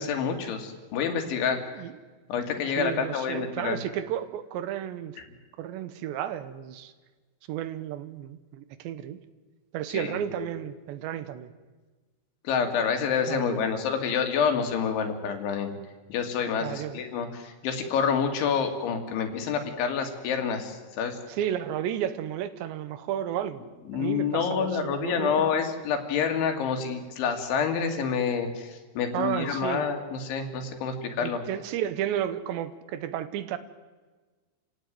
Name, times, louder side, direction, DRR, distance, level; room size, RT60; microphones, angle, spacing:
voice 1, 0.0-1.6 2.3-3.8 9.9-10.5 12.4-15.7 16.1-21.2 23.9-31.4, left 6 dB, 85° left, 5 dB, 4.8 m, -28 dB
voice 2, 2.8-5.2 5.6-6.9 7.5-9.2 9.7-11.5 13.3-13.7 16.6-17.0 21.3-23.6 23.9-25.5 29.1-29.8 31.2-33.6, right 10 dB, 80° right, 13 dB, 3.2 m, -32 dB
29.0 x 16.5 x 9.3 m, 1.4 s
omnidirectional pair, 5.3 m